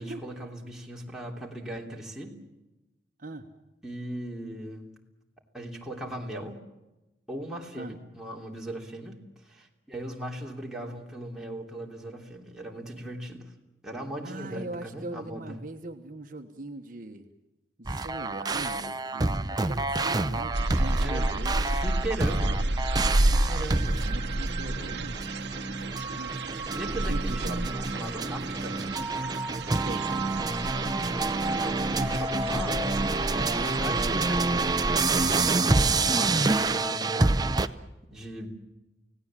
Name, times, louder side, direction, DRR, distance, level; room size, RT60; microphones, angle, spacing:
voice 1, 0.0-2.4 3.8-5.0 5.5-6.6 7.3-9.2 9.4-13.5 13.8-15.6 21.0-21.3 21.7-22.6 23.2-24.0 26.7-28.9 31.4-37.8 38.1-38.5, right 1 dB, 5° right, -2 dB, 3.2 m, -38 dB
voice 2, 14.2-17.3 17.8-21.8 24.0-25.2 26.2-26.4 27.0-27.7 29.7-30.1, right 2 dB, 50° right, 5 dB, 1.3 m, -40 dB
sound 1, 17.9-37.7, right 3 dB, 20° right, 0.7 m, -28 dB
sound 2, 20.5-35.5, right 1 dB, 70° right, 1.1 m, -31 dB
29.0 x 17.5 x 7.6 m, 1.0 s
head